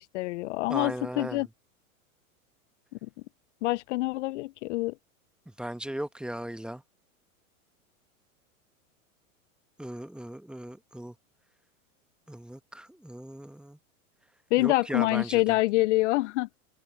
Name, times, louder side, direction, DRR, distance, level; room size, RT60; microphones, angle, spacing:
voice 1, 0.0-1.5 3.6-4.9 14.5-16.6, left 20 dB, 60° left, 0.5 m, -26 dB
voice 2, 0.7-1.5 5.6-6.8 9.8-11.1 12.3-13.8 14.6-15.6, right 1 dB, ahead, 1.1 m, -37 dB
hypercardioid pair, 115°, 42 cm